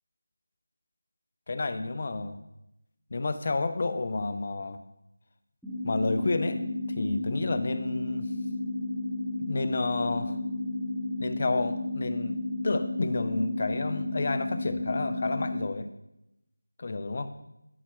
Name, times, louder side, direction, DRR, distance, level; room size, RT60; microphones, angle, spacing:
voice 1, 1.5-2.4 3.1-4.8 5.8-6.6 6.9-8.3 9.4-10.4 11.2-15.9 16.8-17.3, left 3 dB, 35° left, 10 dB, 0.6 m, -30 dB
sound 1, 5.6-15.6, left 2 dB, ahead, 1.0 m, -32 dB
12.5 x 5.7 x 3.3 m, 0.88 s
figure-of-eight pair, 170°, 0 cm